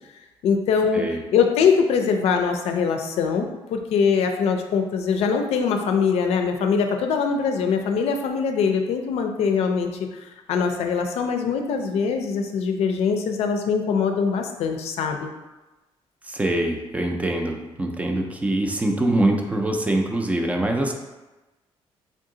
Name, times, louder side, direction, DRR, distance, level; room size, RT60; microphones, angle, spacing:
voice 1, 0.4-1.0 1.3-9.9 10.5-15.3, left 6 dB, 80° left, 4 dB, 0.5 m, -22 dB
voice 2, 16.2-20.9, right 1 dB, 15° right, 2 dB, 0.3 m, -24 dB
3.6 x 2.7 x 3.7 m, 1.1 s
cardioid pair, 165°, 11 cm